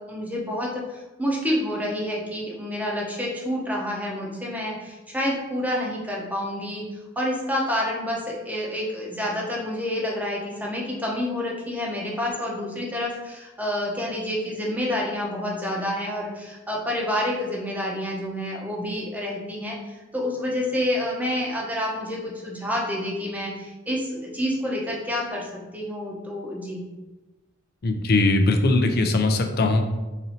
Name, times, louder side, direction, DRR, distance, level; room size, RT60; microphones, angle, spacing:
voice 1, 0.0-6.8 7.2-25.5 25.7-26.8, left 1 dB, 10° right, -2 dB, 0.8 m, -28 dB
voice 2, 27.8-29.8, left 2 dB, 50° left, 5 dB, 0.5 m, -20 dB
4.2 x 2.6 x 4.2 m, 1.1 s
head